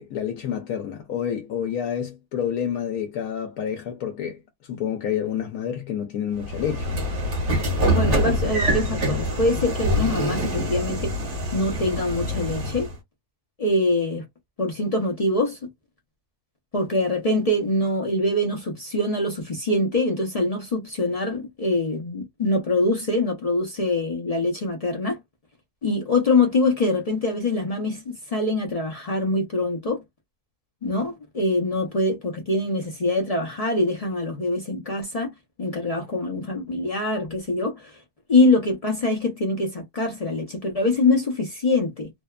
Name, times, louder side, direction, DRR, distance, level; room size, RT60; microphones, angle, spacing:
voice 1, 0.0-6.9, left 9 dB, 85° left, 1.1 m, -29 dB
Train / Sliding door, 6.4-13.0, equal, 40° right, 1.1 m, -25 dB
voice 2, 7.9-11.1 11.5-12.9 13.6-14.2 14.6-15.6 16.7-25.2 25.8-30.0 30.8-35.3 35.6-38.0 38.3-42.1, left 2 dB, 55° left, 0.4 m, -24 dB
2.7 x 2.1 x 2.2 m
omnidirectional pair, 1.5 m